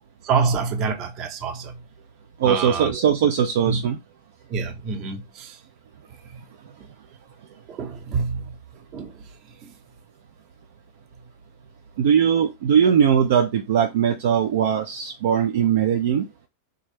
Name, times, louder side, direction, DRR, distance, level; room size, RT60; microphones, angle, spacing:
voice 1, 0.2-1.7 2.4-3.0 3.7-3.8 4.5-5.6 7.7-8.5 8.9-9.1, right 5 dB, 40° right, 0.8 m, -26 dB
voice 2, 2.4-4.0 12.0-16.3, right 8 dB, 55° right, 0.4 m, -20 dB
3.3 x 2.3 x 3.3 m
figure-of-eight pair, 90°, 0 cm